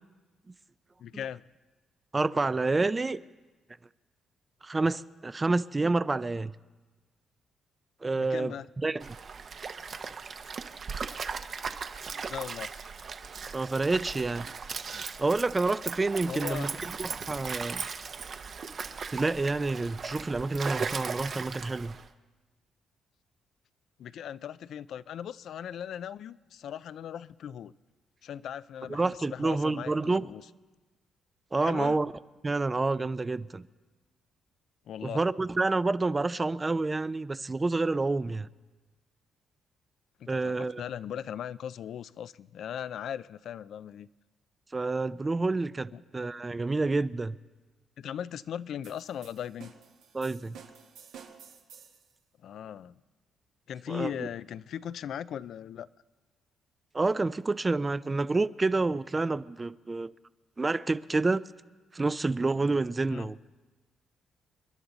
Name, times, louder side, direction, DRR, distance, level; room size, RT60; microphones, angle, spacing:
voice 1, 1.0-1.4 8.2-8.7 12.1-12.7 16.2-16.7 24.0-27.7 28.2-30.4 31.6-32.0 34.9-35.2 40.2-44.1 45.9-46.0 48.0-49.7 52.4-52.9 53.7-55.9 63.1-63.3, left 9 dB, 70° left, 0.4 m, -38 dB
voice 2, 2.1-3.2 4.6-6.5 8.0-8.5 8.8-9.2 13.5-14.5 15.2-16.7 17.0-17.9 19.1-22.0 28.9-30.3 31.5-32.1 32.4-33.6 35.0-38.5 40.3-40.8 44.7-47.4 50.1-50.6 53.9-54.3 56.9-60.1 60.6-61.4 61.9-63.4, right 3 dB, 25° right, 0.4 m, -28 dB
Stream, 9.0-22.1, right 5 dB, 50° right, 0.8 m, -38 dB
sound 1, 48.8-52.1, right 7 dB, 90° right, 1.7 m, -51 dB
29.0 x 11.0 x 3.9 m
cardioid pair, 90°, 0 cm